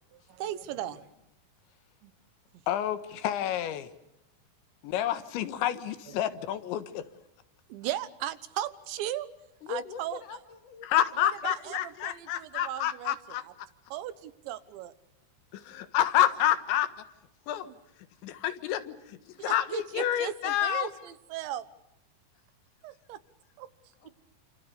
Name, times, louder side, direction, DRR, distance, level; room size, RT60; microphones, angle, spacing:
voice 1, 0.1-1.1 2.0-2.1 6.1-6.2 7.7-9.3 9.7-10.2 11.2-13.2 13.5-13.6 13.9-14.9 17.7-17.8 19.4-21.7 22.8-23.2 23.6-23.7, right 12 dB, 85° right, 14 dB, 3.5 m, -37 dB
voice 2, 2.7-3.0 3.2-3.9 4.8-7.1 10.8-13.4 15.5-16.9 17.5-17.7 18.2-20.9, left 11 dB, 85° left, 12 dB, 3.8 m, -29 dB
voice 3, 9.6-10.9 11.4-11.7 24.0-24.2, left 6 dB, 55° left, 8 dB, 3.2 m, -41 dB
29.5 x 27.0 x 6.8 m, 0.87 s
omnidirectional pair, 5.1 m